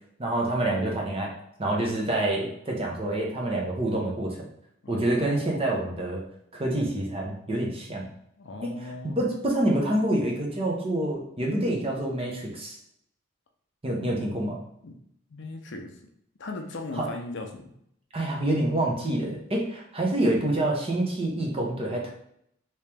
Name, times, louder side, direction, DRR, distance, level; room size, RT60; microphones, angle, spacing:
voice 1, 0.2-1.3 1.6-4.4 4.9-6.2 6.5-8.1 8.6-12.8 13.8-14.6 17.0-17.1 18.1-22.1, right 1 dB, 30° right, -1 dB, 0.8 m, -27 dB
voice 2, 4.8-5.7 8.4-9.2 14.8-15.0 15.3-16.0 16.4-17.7, left 2 dB, 60° left, 3 dB, 0.5 m, -38 dB
3.2 x 2.9 x 3.4 m, 0.73 s
head